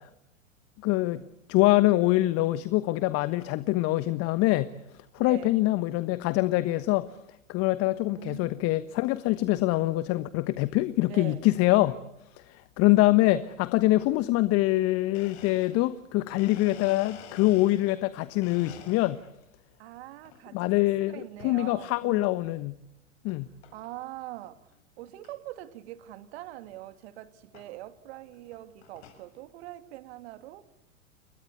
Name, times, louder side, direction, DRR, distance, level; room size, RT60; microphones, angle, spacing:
voice 1, 0.8-1.2 1.5-4.7 5.1-7.1 7.5-11.9 12.5-19.2 20.5-22.8 23.2-23.5, left 18 dB, 35° left, 1.3 m, -24 dB
voice 2, 5.2-5.5 8.1-8.5 11.1-11.4 13.2-13.5 19.8-22.4 23.7-24.7 25.0-30.7, right 15 dB, 55° right, 2.5 m, -43 dB
Domestic sounds home sounds, 15.1-18.1 18.4-19.4 19.9-20.4 21.4-21.7 22.3-22.4 23.3-23.4 23.6-24.0 24.4-24.5 24.7-24.8 25.2-25.3 26.7-26.8 27.5-27.7 28.3-29.3, left 8 dB, 55° left, 6.7 m, -49 dB
30.0 x 23.0 x 8.4 m
figure-of-eight pair, 95°, 39 cm